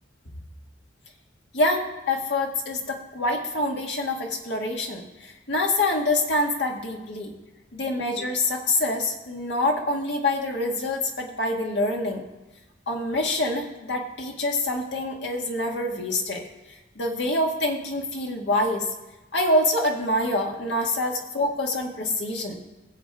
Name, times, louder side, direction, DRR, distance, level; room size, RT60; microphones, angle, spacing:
voice 1, 1.5-7.3 7.7-12.2 12.9-16.4 17.0-18.9 19.3-22.6, left 2 dB, 70° left, 1 dB, 1.9 m, -26 dB
21.0 x 7.5 x 3.6 m, 1.1 s
head